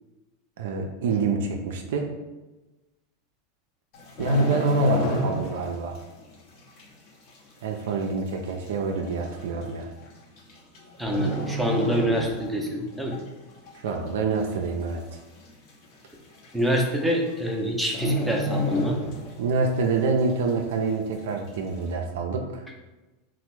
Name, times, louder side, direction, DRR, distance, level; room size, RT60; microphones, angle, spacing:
voice 1, 0.6-2.1 4.2-6.0 7.6-9.9 13.8-15.2 19.4-22.7, right 4 dB, 65° right, 3 dB, 0.3 m, -27 dB
sound 1, 3.9-5.7 6.0-6.2 6.8-6.9 7.8-7.9 8.1-8.2 9.0-9.3 10.4-10.8 11.0-12.6 13.0-13.2 13.7-14.2 14.5-14.6 14.9-15.0 15.4-15.5 16.4-16.5 16.8-17.1 17.4-17.5 17.9-19.5 19.9-20.0, equal, 50° left, 0.7 m, -28 dB
voice 2, 11.0-13.2 16.5-19.0, equal, ahead, 0 dB, 0.5 m, -26 dB
3.2 x 2.0 x 3.0 m, 1.1 s
figure-of-eight pair, 90°, 0 cm